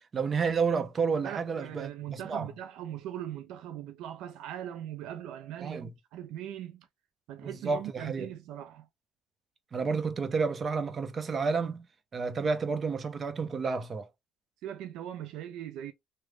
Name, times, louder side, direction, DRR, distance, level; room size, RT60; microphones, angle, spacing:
voice 1, 0.0-2.5 5.6-5.9 7.4-8.3 9.7-11.9 12.1-14.1, right 5 dB, 35° right, 0.7 m, -30 dB
voice 2, 1.2-6.9 7.3-8.9 14.6-15.9, right 11 dB, 80° right, 0.4 m, -40 dB
3.1 x 2.1 x 3.4 m
cardioid pair, 95°, 0 cm